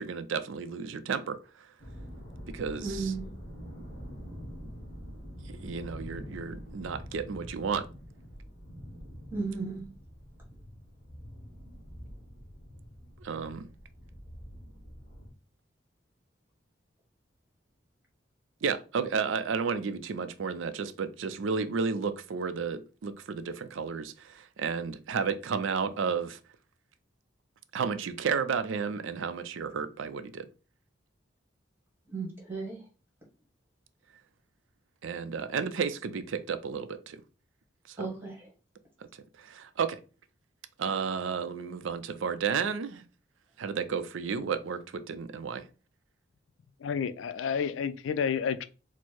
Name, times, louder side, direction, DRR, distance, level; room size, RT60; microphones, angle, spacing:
voice 1, 0.0-1.4 2.5-3.1 5.5-7.9 13.2-13.7 18.6-26.4 27.7-30.5 35.0-37.2 37.9-38.0 39.4-40.0 40.8-43.0 43.6-45.6, right 5 dB, 85° right, 0.4 m, -32 dB
sound 1, 1.8-15.3, equal, 30° left, 1.3 m, -45 dB
voice 2, 2.8-3.3 9.3-9.8 32.1-32.8 38.0-38.5, right 4 dB, 10° right, 1.4 m, -35 dB
voice 3, 46.8-48.7, left 7 dB, 85° left, 0.4 m, -30 dB
4.4 x 2.1 x 4.4 m
head